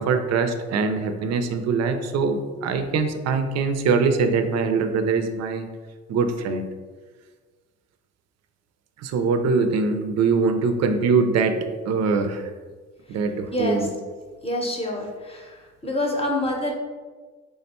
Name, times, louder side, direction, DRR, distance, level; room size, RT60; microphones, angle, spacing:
voice 1, 0.0-5.7 6.1-6.7 9.0-12.5 13.1-13.9, right 4 dB, 60° right, 7 dB, 0.5 m, -23 dB
voice 2, 13.5-13.8 14.4-15.6 15.8-16.7, left 1 dB, 20° left, 0 dB, 0.8 m, -26 dB
3.5 x 2.2 x 4.1 m, 1.4 s
cardioid pair, 90°, 30 cm